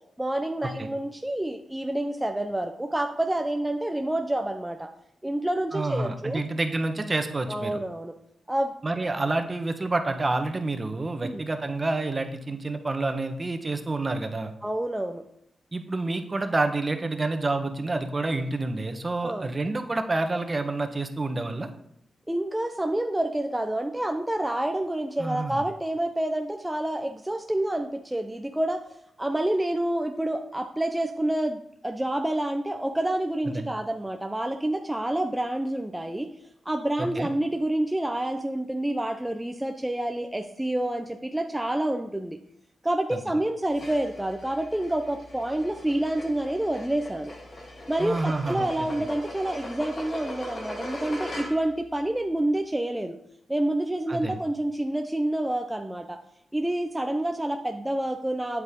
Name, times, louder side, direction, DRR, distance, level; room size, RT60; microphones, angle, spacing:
voice 1, 0.2-4.9 5.2-6.4 7.5-8.1 8.5-8.7 11.2-11.4 14.6-15.2 19.2-19.5 22.3-28.8 29.2-36.3 36.7-42.4 42.8-47.3 47.9-53.2 53.5-56.2 56.5-58.6, right 1 dB, 10° right, 4 dB, 0.7 m, -28 dB
voice 2, 5.7-7.8 8.8-14.5 15.7-21.7 25.2-25.6 33.5-33.7 37.0-37.3 48.0-48.9 54.1-54.4, right 2 dB, 35° right, 7 dB, 1.2 m, -28 dB
sound 1, 43.7-51.8, left 1 dB, 55° left, 2.7 m, -40 dB
8.7 x 8.1 x 3.8 m, 0.74 s
cardioid pair, 60°, 0 cm